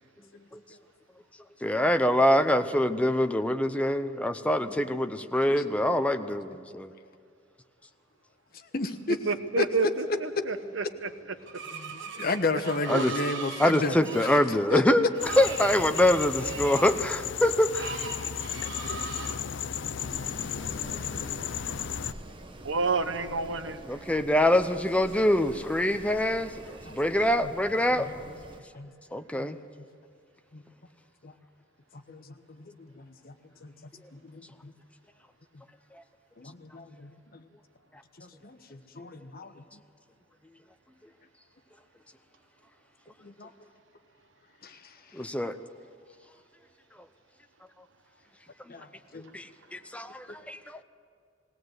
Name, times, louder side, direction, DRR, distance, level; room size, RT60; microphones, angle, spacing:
voice 1, 1.6-6.9 12.9-13.1 13.6-18.0 23.9-28.1 29.1-29.6 45.1-45.6 49.3-49.5 49.7-50.8, left 1 dB, 5° left, 8 dB, 0.7 m, -25 dB
voice 2, 8.7-9.2 9.6-10.2 11.7-14.3 14.7-14.8 19.5-20.7 26.8-27.5 27.9-28.1 28.7-28.9 29.3-29.5 30.5-30.6 31.2-31.3 31.9-33.3 33.6-33.7 34.1-34.7 36.4-37.4 38.2-39.6 43.2-43.5 44.6-44.9 45.2-45.3 48.7-48.9 49.1-49.3, left 3 dB, 55° left, 8 dB, 1.1 m, -34 dB
voice 3, 9.3-10.0 10.5-10.8 22.6-23.8, right 4 dB, 85° right, 11 dB, 1.0 m, -28 dB
Screech, 11.5-19.4, right 5 dB, 70° right, 1.4 m, -40 dB
sound 1, 15.2-22.1, left 8 dB, 70° left, 0.5 m, -34 dB
Wind, 20.0-28.6, right 1 dB, 25° right, 1.2 m, -46 dB
20.5 x 17.0 x 8.0 m, 2.3 s
head